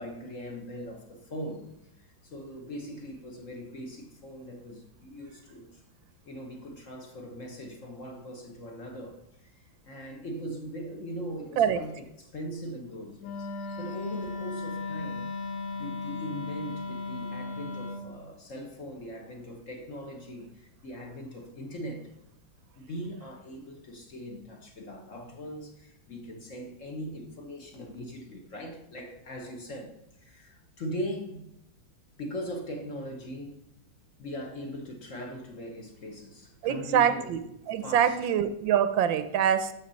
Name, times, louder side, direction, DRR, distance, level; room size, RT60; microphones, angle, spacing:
voice 1, 0.0-5.8 6.2-13.5 13.8-15.3 15.7-22.1 22.8-31.4 32.2-33.6 34.2-37.4 37.8-38.2, equal, 45° left, 1.3 m, -40 dB
Wind instrument woodwind instrument, 13.2-18.1, left 3 dB, 65° left, 1.8 m, -36 dB
voice 2, 36.6-37.4 37.7-39.7, right 9 dB, 80° right, 1.4 m, -24 dB
13.0 x 6.0 x 4.1 m
omnidirectional pair, 2.1 m